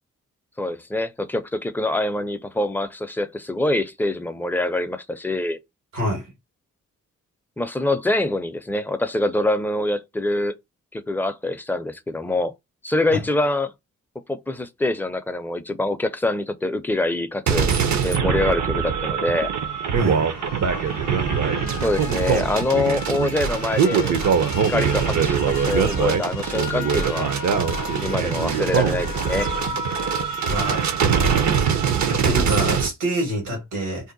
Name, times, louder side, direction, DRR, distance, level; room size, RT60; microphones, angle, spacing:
voice 1, 0.6-5.6 7.6-10.5 10.9-12.5 12.8-13.7 14.3-17.7 18.0-19.5 21.8-24.2 24.7-27.3 28.0-29.5, left 2 dB, 5° left, 0.4 m, -25 dB
voice 2, 5.9-6.3 13.1-13.2 19.9-20.3 29.7-29.8 30.5-30.8 32.1-34.1, equal, 90° right, 1.2 m, -26 dB
sound 1, 17.5-32.9, right 6 dB, 60° right, 0.6 m, -22 dB
sound 2, 19.3-30.9, left 9 dB, 90° left, 0.5 m, -36 dB
2.7 x 2.1 x 3.9 m
cardioid pair, 60°, 31 cm